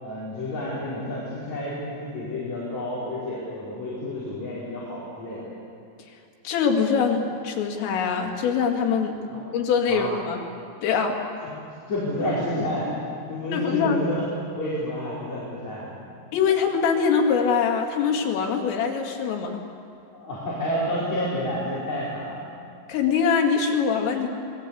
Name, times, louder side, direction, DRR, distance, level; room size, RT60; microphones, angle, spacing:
voice 1, 0.0-5.5 9.3-9.4 9.9-10.1 11.9-14.1 14.6-16.2 20.1-22.4, left 1 dB, 35° left, -9 dB, 6.2 m, -30 dB
voice 2, 6.4-9.2 9.5-10.4 10.8-11.2 13.5-14.0 16.3-19.5 22.9-24.3, left 6 dB, 85° left, 2 dB, 5.0 m, -23 dB
27.5 x 21.0 x 8.6 m, 2.4 s
omnidirectional pair, 5.7 m